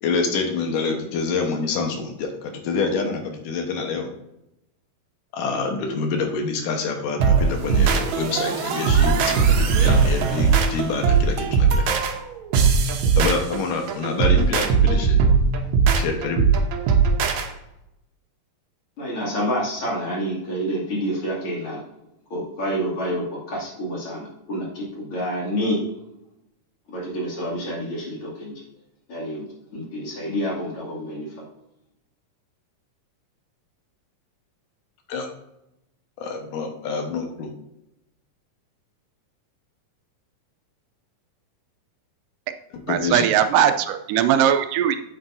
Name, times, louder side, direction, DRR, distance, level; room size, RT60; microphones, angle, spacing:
voice 1, 0.0-4.1 5.3-11.9 13.2-15.2 16.0-16.5 35.1-35.3 36.2-37.5 42.9-43.3, left 4 dB, 80° left, 3 dB, 2.7 m, -26 dB
sound 1, 7.2-17.5, right 5 dB, 70° right, 2.1 m, -19 dB
voice 2, 19.0-21.8 22.3-25.8 26.9-28.5 29.1-29.4 29.7-31.4, equal, 45° left, -4 dB, 3.3 m, -28 dB
voice 3, 42.9-45.0, right 10 dB, 85° right, 9 dB, 2.2 m, -19 dB
8.7 x 8.6 x 2.7 m, 0.86 s
omnidirectional pair, 3.8 m